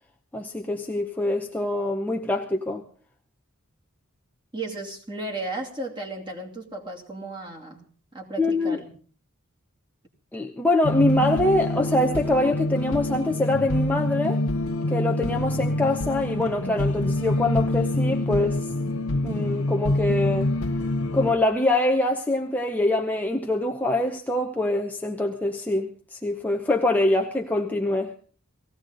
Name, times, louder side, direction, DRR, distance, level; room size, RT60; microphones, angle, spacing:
voice 1, 0.3-2.8 8.4-8.8 10.3-14.4 14.9-18.7 19.2-20.5 21.1-28.1, left 2 dB, 10° left, 0.7 m, -24 dB
voice 2, 4.5-8.9, right 2 dB, 20° right, 2.6 m, -35 dB
sound 1, 10.8-21.3, left 1 dB, 75° left, 1.0 m, -26 dB
19.0 x 16.0 x 3.9 m
head